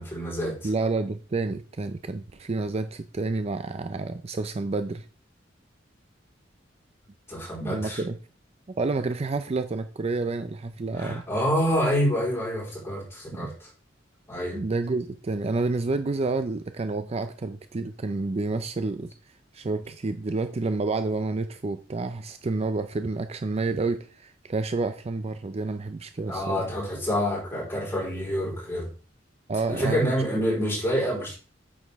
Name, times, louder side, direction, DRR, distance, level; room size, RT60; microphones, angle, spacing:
voice 1, 0.0-0.7 7.3-8.0 10.9-13.7 14.3-14.6 26.3-28.9 29.7-31.4, equal, 15° left, -4 dB, 4.3 m, -27 dB
voice 2, 0.6-5.0 7.6-8.2 8.8-11.2 13.3-13.6 14.5-19.1 19.5-26.7 29.5-30.4, right 3 dB, 35° right, 10 dB, 0.4 m, -29 dB
9.0 x 6.3 x 3.5 m, 0.38 s
head